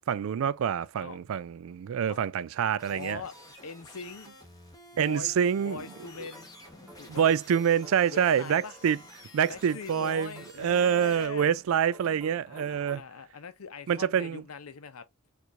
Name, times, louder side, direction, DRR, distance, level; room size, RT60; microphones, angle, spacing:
voice 1, 0.1-3.2 5.0-5.8 7.1-9.0 9.3-10.3 10.6-13.0 13.9-14.4, right 8 dB, 65° right, 0.3 m, -26 dB
sound 1, 2.8-11.3, left 1 dB, 15° left, 1.0 m, -51 dB
voice 2, 2.9-3.4 3.6-4.3 4.9-6.5 6.8-7.2 8.1-8.8 9.5-11.6 12.4-15.1, left 5 dB, 85° left, 0.7 m, -42 dB
sound 2, 5.6-13.0, equal, 10° right, 1.3 m, -53 dB
4.5 x 2.5 x 2.5 m
head